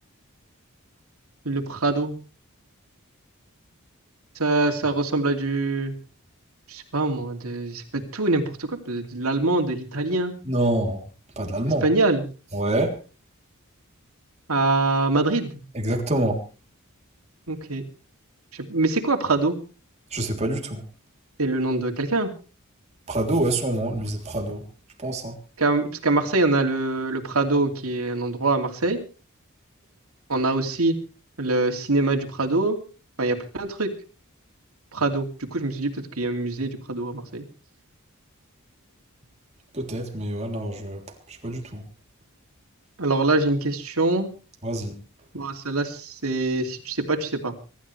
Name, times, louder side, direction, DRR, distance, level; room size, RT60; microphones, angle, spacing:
voice 1, 1.4-2.2 4.3-5.9 6.7-10.3 11.8-12.3 14.5-15.6 17.5-17.8 18.5-19.6 21.4-22.3 25.6-29.0 30.3-31.0 31.4-32.8 33.2-33.9 34.9-37.4 43.0-44.3 45.3-47.5, right 2 dB, 80° right, 2.8 m, -24 dB
voice 2, 10.5-11.0 11.4-11.9 12.5-12.9 15.7-16.4 20.1-20.8 23.1-24.6 25.0-25.3 39.7-41.0 41.4-41.8 44.6-44.9, right 1 dB, 30° right, 3.4 m, -26 dB
24.5 x 13.0 x 3.4 m
head